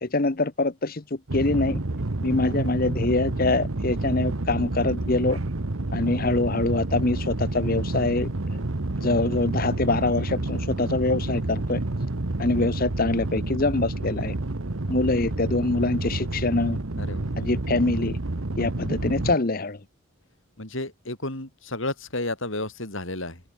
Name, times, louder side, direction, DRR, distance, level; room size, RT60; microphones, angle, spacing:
voice 1, 0.0-1.0 1.3-1.8 2.2-5.4 5.9-8.3 9.0-11.8 12.4-14.3 14.9-16.8 17.4-18.2 18.6-19.8, left 2 dB, 40° left, 0.9 m, -24 dB
sound 1, 1.3-19.4, right 2 dB, 70° right, 1.3 m, -29 dB
voice 2, 20.6-23.4, left 2 dB, 65° left, 4.6 m, -32 dB
head